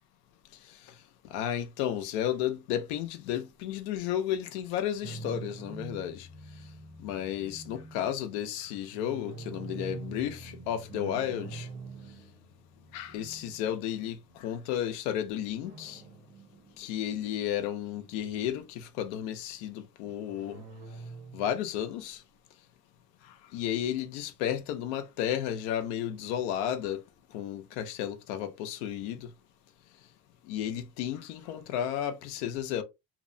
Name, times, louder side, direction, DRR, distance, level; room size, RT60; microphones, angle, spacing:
voice 1, 1.3-6.3 7.0-11.7 12.9-16.0 16.8-20.6 21.3-22.2 23.5-27.0 27.3-29.3 30.5-32.8, left 10 dB, 85° left, 0.6 m, -33 dB
sound 1, 5.0-14.4 15.6-17.2 17.6-18.7 20.1-21.7, right 3 dB, 40° right, 0.9 m, -45 dB
2.8 x 2.1 x 2.6 m
supercardioid pair, 80°, 33 cm